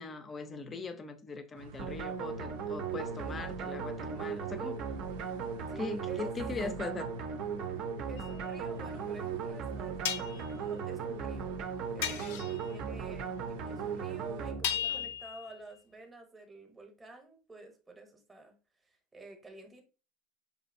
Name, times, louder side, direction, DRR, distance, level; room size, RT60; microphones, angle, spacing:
voice 1, 0.0-4.8 5.8-7.1, left 4 dB, 20° left, 0.5 m, -40 dB
sound 1, 1.5-14.5, right 5 dB, 85° right, 0.6 m, -50 dB
sound 2, 1.8-15.1, right 6 dB, 45° right, 0.6 m, -37 dB
voice 2, 5.7-6.3 8.0-11.5 11.9-18.5 18.8-19.8, right 2 dB, 10° right, 0.9 m, -51 dB
sound 3, 8.2-8.3 10.1-10.5 12.0-12.7 14.6-15.5, left 9 dB, 80° left, 0.5 m, -35 dB
5.1 x 2.7 x 2.6 m
supercardioid pair, 150°, 0 cm